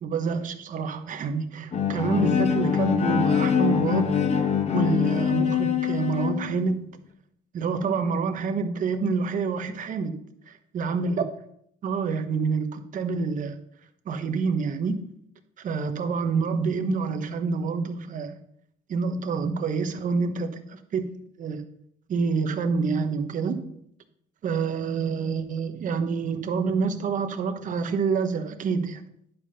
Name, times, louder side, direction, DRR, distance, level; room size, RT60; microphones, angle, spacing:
voice 1, 0.0-4.1 4.7-6.9 7.5-10.2 10.5-11.2 11.8-13.5 14.1-15.1 15.6-18.4 18.9-21.6 22.1-23.7 24.4-29.0, right 5 dB, 50° right, 7 dB, 1.1 m, -27 dB
Bowed string instrument, 1.7-6.6, left 8 dB, 40° left, 1.1 m, -24 dB
10.5 x 5.2 x 5.7 m, 0.71 s
cardioid pair, 110°, 17 cm